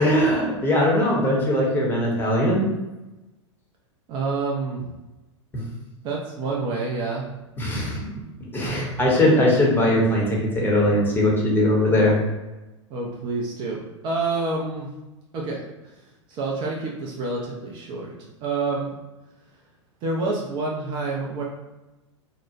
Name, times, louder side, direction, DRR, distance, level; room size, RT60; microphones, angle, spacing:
voice 1, 0.0-2.6 7.6-8.0 8.5-12.1, left 1 dB, 15° left, -3 dB, 0.7 m, -20 dB
voice 2, 4.1-4.9 6.0-7.2 8.6-9.3 12.9-14.9 15.3-15.7 16.3-18.1 18.4-19.0 20.0-21.4, right 3 dB, 30° right, -2 dB, 0.4 m, -28 dB
2.8 x 2.0 x 2.5 m, 1.1 s
figure-of-eight pair, 95°, 16 cm